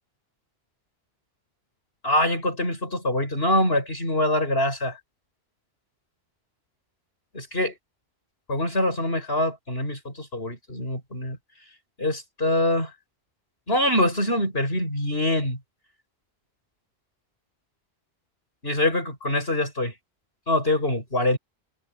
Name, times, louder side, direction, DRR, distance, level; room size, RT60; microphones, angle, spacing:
voice 1, 2.0-5.0 7.3-7.7 8.5-11.4 12.0-12.9 13.7-15.6 18.6-19.9 20.5-21.4, left 1 dB, 65° left, 7.5 m, -24 dB
omnidirectional pair, 1.1 m